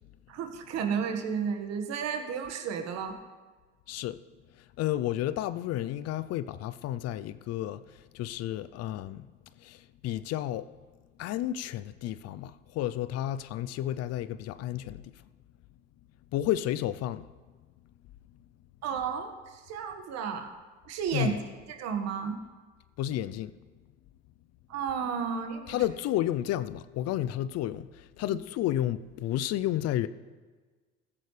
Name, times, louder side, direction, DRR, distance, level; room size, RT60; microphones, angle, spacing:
voice 1, 0.3-3.2 18.8-20.5 20.8-21.3 21.7-22.4 24.7-25.8 28.3-28.4, right 7 dB, 60° right, 1.7 m, -32 dB
voice 2, 3.9-4.2 4.8-9.3 9.6-10.7 11.2-15.1 16.3-17.3 21.1-21.4 23.0-23.5 25.7-30.1, left 12 dB, 55° left, 0.6 m, -31 dB
15.5 x 14.5 x 3.3 m
supercardioid pair, 85°, 30 cm